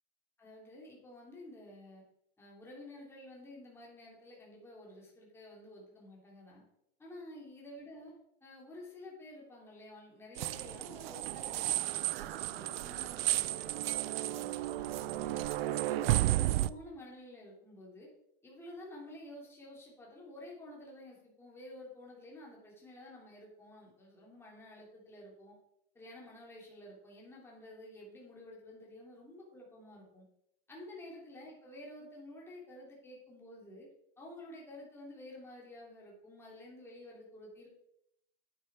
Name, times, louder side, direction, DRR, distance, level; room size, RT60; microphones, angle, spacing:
voice 1, 0.4-2.0 2.4-6.6 7.0-8.1 8.4-15.5 15.9-18.1 18.4-25.5 25.9-30.2 30.7-33.9 34.2-37.7, left 1 dB, 10° left, -3 dB, 3.0 m, -51 dB
sound 1, 10.4-16.7, right 15 dB, 80° right, 0.5 m, -33 dB
9.4 x 9.0 x 4.7 m, 0.77 s
supercardioid pair, 160°, 30 cm